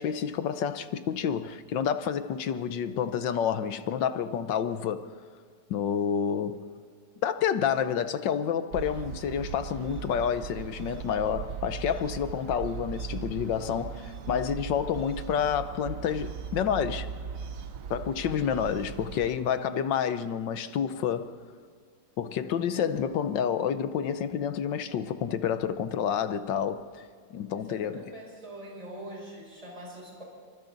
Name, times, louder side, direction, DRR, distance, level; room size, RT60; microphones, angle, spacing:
voice 1, 0.0-5.1 5.7-6.6 7.2-17.1 17.9-21.3 22.2-28.0, left 8 dB, 75° left, 1.6 m, -29 dB
sound 1, 8.7-19.4, right 7 dB, 55° right, 1.1 m, -39 dB
voice 2, 27.5-30.2, right 1 dB, 15° right, 5.3 m, -43 dB
27.5 x 24.5 x 4.0 m
omnidirectional pair, 2.0 m